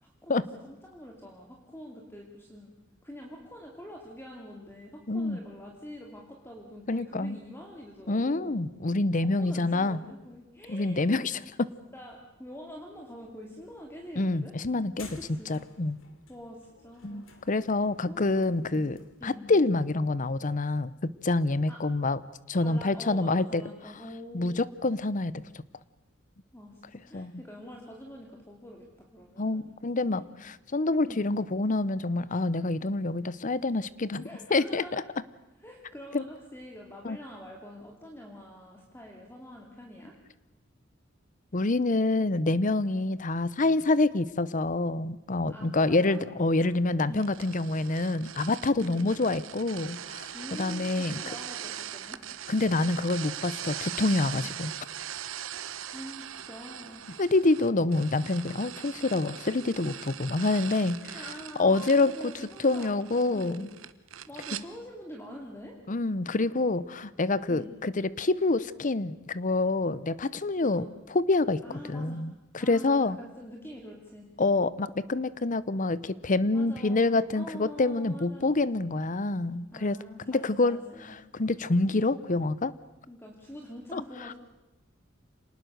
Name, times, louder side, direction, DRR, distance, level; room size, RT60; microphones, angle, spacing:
voice 1, 0.0-2.7 3.0-8.6 9.4-11.1 11.9-14.5 15.1-15.5 16.3-17.3 18.0-18.9 19.2-19.5 21.7-21.8 22.6-24.6 26.5-28.9 29.1-29.8 30.1-30.3 31.0-31.2 34.2-35.1 35.6-40.1 45.5-46.2 46.6-46.8 47.1-47.3 48.8-49.2 50.3-52.2 55.5-57.0 61.1-63.0 63.3-63.7 64.3-65.8 67.5-67.7 70.6-70.9 71.6-72.2 72.6-74.3 76.5-78.5 79.7-81.2 81.5-81.7 83.1-84.3, equal, 10° left, 0 dB, 2.4 m, -45 dB
voice 2, 5.1-5.4 6.9-7.4 8.1-10.0 10.7-11.7 14.2-15.1 15.5-16.0 17.0-19.0 19.2-22.2 22.5-23.6 24.3-25.4 27.1-27.4 29.4-35.0 36.1-36.2 37.0-37.2 41.5-51.2 52.5-54.7 57.2-61.2 61.6-62.3 62.6-63.7 64.5-64.6 65.9-71.6 71.9-73.2 74.4-80.0 80.3-80.8 81.3-82.7 83.9-84.3, left 2 dB, 40° left, 18 dB, 0.8 m, -27 dB
sound 1, 13.2-19.2, left 3 dB, 75° left, 2.9 m, -53 dB
sound 2, 47.2-64.6, right 10 dB, 85° right, 1.0 m, -41 dB
27.0 x 19.0 x 6.7 m, 1.0 s
head